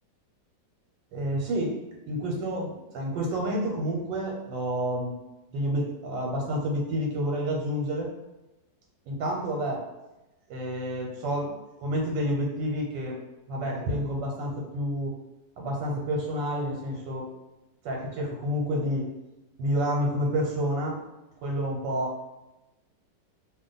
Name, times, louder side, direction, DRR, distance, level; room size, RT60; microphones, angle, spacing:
voice 1, 1.1-1.8 2.1-5.2 5.5-8.1 9.1-9.9 10.5-11.5 11.8-13.2 13.5-15.2 15.6-17.3 17.8-19.1 19.6-21.0 21.4-22.1, equal, 85° right, -1 dB, 1.3 m, -29 dB
2.7 x 2.4 x 3.8 m, 1.0 s
omnidirectional pair, 1.9 m